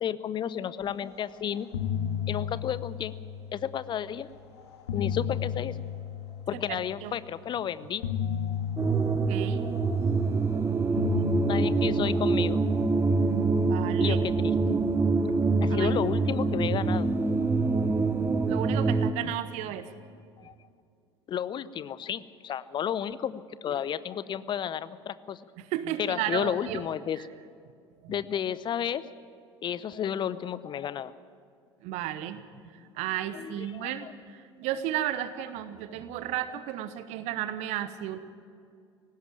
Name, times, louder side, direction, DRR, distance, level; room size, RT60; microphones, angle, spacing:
voice 1, 0.0-1.7 2.3-3.1 3.5-4.3 4.9-5.8 6.5-8.0 11.5-12.6 14.0-14.8 15.6-17.1 20.4-20.5 21.3-25.4 26.0-27.3 28.1-29.0 29.6-31.1 33.3-34.1, left 9 dB, 30° left, 17 dB, 0.8 m, -32 dB
sound 1, 1.1-1.3 1.6-3.9 4.6-7.0 8.0-10.5 11.0-13.5, left 8 dB, 65° left, 2.0 m, -34 dB
voice 2, 6.7-7.1 9.3-9.6 13.2-14.2 15.7-15.9 18.5-19.9 25.6-26.8 28.0-28.1 31.8-32.4 32.9-34.0 34.3-38.2, right 12 dB, 50° right, 14 dB, 0.9 m, -33 dB
sound 2, 8.8-19.1, right 4 dB, 15° right, 1.0 m, -25 dB
19.0 x 16.0 x 8.9 m, 2.4 s
figure-of-eight pair, 65°, 15 cm